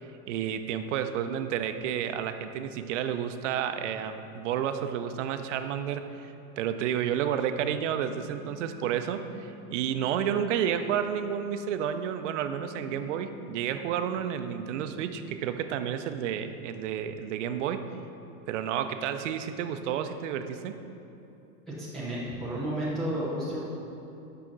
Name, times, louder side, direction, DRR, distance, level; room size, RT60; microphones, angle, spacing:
voice 1, 0.3-17.8 18.5-20.8, right 9 dB, 55° right, 9 dB, 0.6 m, -31 dB
sound 1, 8.0-15.5, right 1 dB, 45° left, 0.9 m, -51 dB
voice 2, 21.7-23.6, right 1 dB, ahead, -10 dB, 0.3 m, -32 dB
6.1 x 5.8 x 6.2 m, 2.8 s
supercardioid pair, 160°, 44 cm